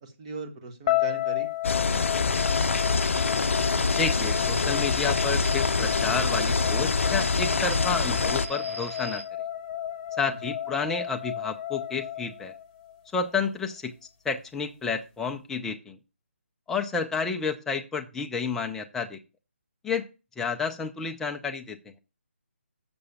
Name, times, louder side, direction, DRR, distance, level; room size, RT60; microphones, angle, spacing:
voice 1, 0.0-1.5 1.9-2.6 10.2-10.5, right 4 dB, 30° right, 5 dB, 1.5 m, -40 dB
sound 1, 0.9-13.0, left 13 dB, 25° left, 1.3 m, -33 dB
sound 2, 1.6-8.5, left 4 dB, 70° left, 0.5 m, -25 dB
sound 3, 2.3-9.2, right 2 dB, 75° right, 1.4 m, -39 dB
voice 2, 3.9-9.2 10.2-12.5 13.1-13.9 14.2-16.0 16.7-19.2 19.8-20.0 20.4-21.8, left 5 dB, 5° left, 4 dB, 0.5 m, -30 dB
6.9 x 6.3 x 7.0 m, 0.31 s
hypercardioid pair, 165°, 7 cm